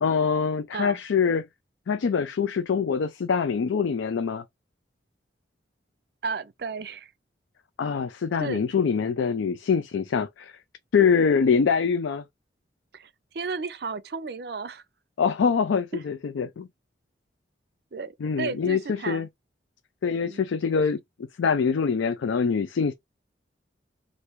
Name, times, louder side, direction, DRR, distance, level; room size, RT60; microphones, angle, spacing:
voice 1, 0.0-1.5 1.9-4.4 7.8-10.5 10.9-12.2 15.2-16.7 18.2-19.3 20.0-21.0 21.4-22.9, left 6 dB, 85° left, 0.4 m, -24 dB
voice 2, 6.2-7.1 8.4-8.6 12.9-14.8 15.9-16.0 17.9-19.3 20.2-20.4, right 4 dB, 55° right, 0.5 m, -34 dB
3.2 x 2.6 x 2.9 m
head